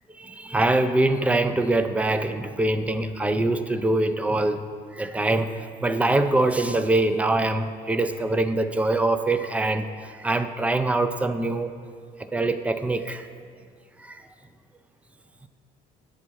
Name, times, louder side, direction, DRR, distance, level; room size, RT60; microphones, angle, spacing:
voice 1, 0.1-4.6 4.9-11.7 12.2-13.3 14.0-14.2, right 2 dB, 10° right, 9 dB, 0.3 m, -24 dB
8.2 x 3.4 x 6.1 m, 2.1 s
cardioid pair, 110°, 17 cm